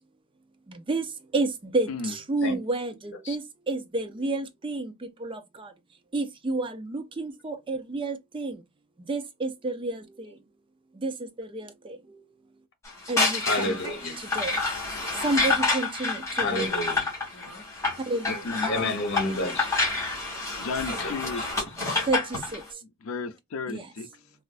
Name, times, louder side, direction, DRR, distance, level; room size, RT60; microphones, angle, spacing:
voice 1, 0.7-1.1 1.3-4.9 5.2-5.7 6.1-8.6 9.1-10.3 11.0-11.1 11.4-12.0 13.1-13.8 14.2-14.6 15.2-16.7 18.1-18.4 22.1-22.6 23.7-23.9, right 2 dB, 25° right, 0.5 m, -30 dB
sound 1, 12.8-22.6, left 3 dB, 15° left, 1.9 m, -28 dB
voice 2, 13.4-14.2 16.4-17.1 18.6-19.9 21.0-21.4, left 1 dB, 55° left, 1.0 m, -30 dB
voice 3, 18.2-18.9 20.6-21.4 23.0-24.1, left 4 dB, 80° left, 0.5 m, -33 dB
4.1 x 2.4 x 2.4 m
head